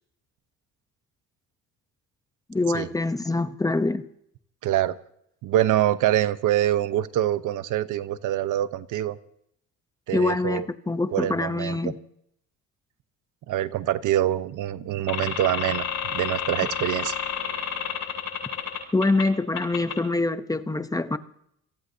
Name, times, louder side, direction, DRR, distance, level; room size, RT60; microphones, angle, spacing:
voice 1, 2.5-4.1 10.1-12.0 18.9-21.2, left 2 dB, 10° left, 0.8 m, -25 dB
voice 2, 4.6-5.0 5.4-9.2 10.1-10.7 11.1-11.8 13.5-17.1, right 12 dB, 65° right, 1.0 m, -25 dB
sound 1, 15.1-19.2 19.5-19.9, left 8 dB, 60° left, 7.2 m, -30 dB
28.0 x 18.5 x 2.8 m
cardioid pair, 120°, 34 cm